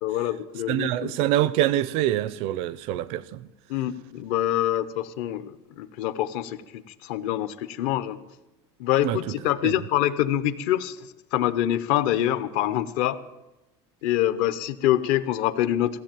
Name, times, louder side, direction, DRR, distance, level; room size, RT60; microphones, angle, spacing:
voice 1, 0.0-1.1 3.7-8.2 8.8-13.2 14.0-16.0, left 12 dB, 55° left, 0.7 m, -25 dB
voice 2, 0.7-3.5 9.0-9.2 9.6-9.7, right 13 dB, 45° right, 0.4 m, -25 dB
15.5 x 7.4 x 9.0 m
cardioid pair, 180°, 14 cm